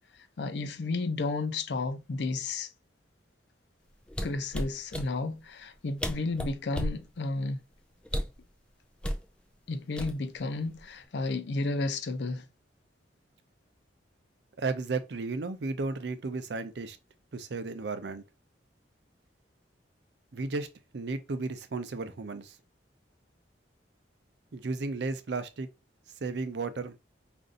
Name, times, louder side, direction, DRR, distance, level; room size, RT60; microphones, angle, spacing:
voice 1, 0.4-2.7 4.2-7.6 9.7-12.5, left 3 dB, 65° left, 0.5 m, -32 dB
sound 1, 4.1-5.1 5.7-5.8 6.0-7.0 8.0-8.4 9.0-9.2 10.0-10.4 10.8-11.0, equal, 5° left, 0.3 m, -32 dB
voice 2, 14.6-17.0 17.3-18.2 20.3-20.7 20.9-22.6 24.5-25.7 26.2-27.0, right 3 dB, 65° right, 0.5 m, -34 dB
5.2 x 2.6 x 2.5 m
head